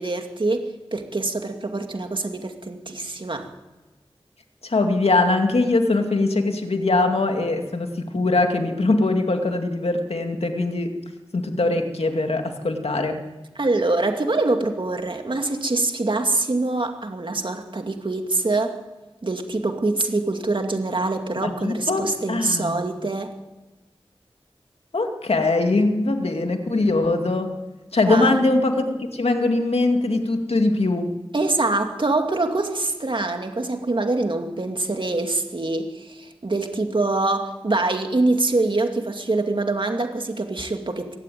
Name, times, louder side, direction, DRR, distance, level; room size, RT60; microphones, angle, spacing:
voice 1, 0.0-3.5 13.6-18.8 19.2-23.3 28.1-28.4 31.3-41.2, right 2 dB, 55° right, 4 dB, 2.4 m, -24 dB
voice 2, 4.6-11.0 11.3-13.3 21.4-22.8 24.9-27.6 27.9-31.1, left 2 dB, 85° left, 4 dB, 2.3 m, -22 dB
23.0 x 17.0 x 9.3 m, 1.1 s
wide cardioid pair, 65°, 10 cm